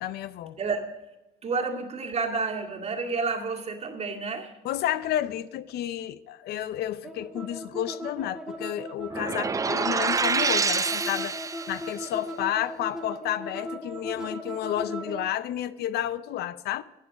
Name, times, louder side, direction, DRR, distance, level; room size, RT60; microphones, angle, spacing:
voice 1, 0.0-0.6 4.6-11.4 11.7-16.8, left 12 dB, 70° left, 0.6 m, -31 dB
voice 2, 0.6-0.9 1.4-4.5, right 4 dB, 40° right, 2.0 m, -30 dB
sound 1, 7.0-15.3, equal, 5° right, 1.6 m, -37 dB
sound 2, 9.1-11.9, right 5 dB, 20° right, 0.4 m, -27 dB
12.0 x 9.7 x 4.8 m
cardioid pair, 110°, 17 cm